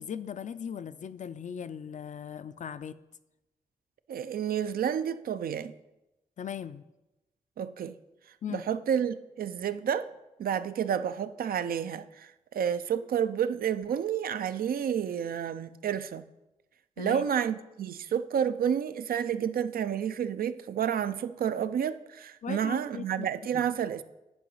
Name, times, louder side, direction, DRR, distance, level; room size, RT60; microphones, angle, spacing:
voice 1, 0.0-3.0 6.4-6.8 8.4-8.6 17.0-17.2 22.4-23.3 23.5-23.6, left 8 dB, 55° left, 0.4 m, -38 dB
voice 2, 4.1-5.7 7.6-8.0 8.5-10.1 10.4-16.2 17.0-24.0, right 8 dB, 90° right, 0.4 m, -30 dB
9.5 x 4.9 x 5.4 m
cardioid pair, 85°, 15 cm